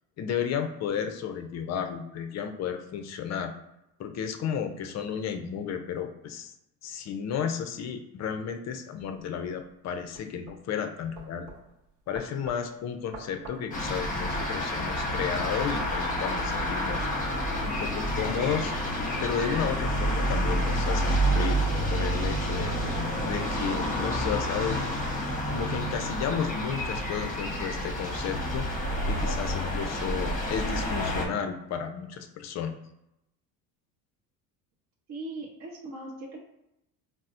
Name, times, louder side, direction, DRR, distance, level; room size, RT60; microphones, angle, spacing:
voice 1, 0.2-3.5 4.0-6.5 6.8-11.4 12.1-18.7 19.2-21.6 21.9-22.7 23.3-24.8 25.5-28.7 29.0-32.8, left 7 dB, 40° left, 6 dB, 0.5 m, -33 dB
sound 1, 9.0-14.7, right 3 dB, 70° right, 1.0 m, -49 dB
sound 2, 13.7-31.3, equal, 20° left, 0.9 m, -29 dB
voice 2, 35.1-36.4, right 2 dB, 40° right, -3 dB, 0.8 m, -39 dB
4.0 x 2.1 x 2.4 m, 0.85 s
hypercardioid pair, 80°, 44 cm